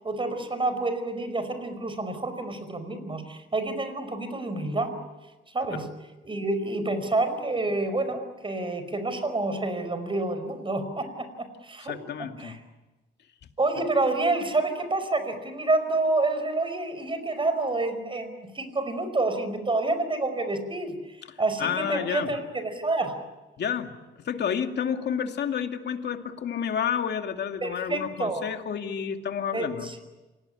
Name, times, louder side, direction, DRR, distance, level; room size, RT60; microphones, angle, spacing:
voice 1, 0.0-5.0 5.5-5.9 6.2-12.0 12.4-12.6 13.6-23.2 27.6-28.4 29.5-30.0, right 2 dB, 25° right, 10 dB, 5.0 m, -28 dB
voice 2, 11.8-12.6 21.3-22.3 23.6-23.9 24.2-29.9, left 8 dB, 60° left, 5 dB, 2.4 m, -30 dB
28.0 x 18.5 x 9.9 m, 1.1 s
cardioid pair, 90°, 20 cm